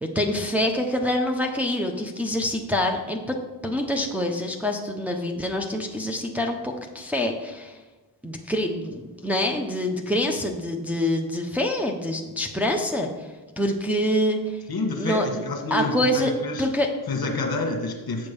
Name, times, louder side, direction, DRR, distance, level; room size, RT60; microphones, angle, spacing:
voice 1, 0.0-3.4 3.6-7.8 8.2-14.6 15.0-15.4 15.7-16.3 16.6-16.9, left 1 dB, 5° right, 1 dB, 0.9 m, -26 dB
voice 2, 14.7-16.7 17.1-18.3, left 2 dB, 50° left, 3 dB, 1.6 m, -28 dB
7.8 x 5.2 x 5.4 m, 1.2 s
cardioid pair, 60°, 46 cm